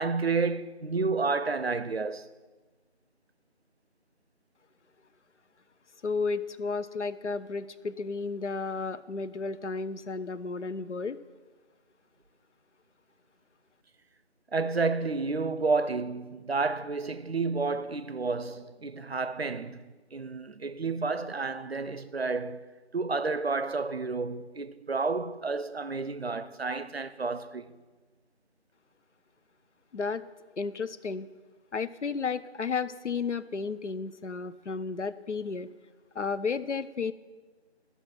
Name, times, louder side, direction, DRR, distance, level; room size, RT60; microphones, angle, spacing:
voice 1, 0.0-2.3 14.5-27.7, right 4 dB, 65° right, 0.6 m, -30 dB
voice 2, 6.0-11.2 29.9-30.2 30.6-31.3 31.7-35.7 36.2-37.1, left 4 dB, 85° left, 0.6 m, -33 dB
13.5 x 5.7 x 5.9 m
figure-of-eight pair, 170°, 34 cm